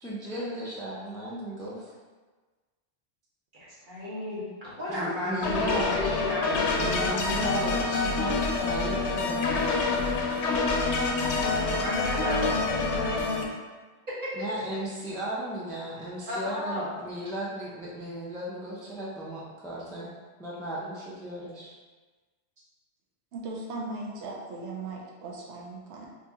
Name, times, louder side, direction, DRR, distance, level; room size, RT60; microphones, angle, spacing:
voice 1, 0.0-1.9 4.9-6.1 6.7-10.7 14.4-20.1 20.4-21.7, right 1 dB, 5° left, -6 dB, 0.4 m, -36 dB
voice 2, 3.5-7.2 11.8-13.5 14.2-14.3 16.3-16.9, left 1 dB, 50° right, -8 dB, 1.3 m, -34 dB
sound 1, 5.4-13.4, left 3 dB, 85° left, 0.9 m, -27 dB
voice 3, 23.3-26.1, right 3 dB, 85° right, -2 dB, 0.9 m, -38 dB
2.9 x 2.7 x 3.5 m, 1.3 s
omnidirectional pair, 1.1 m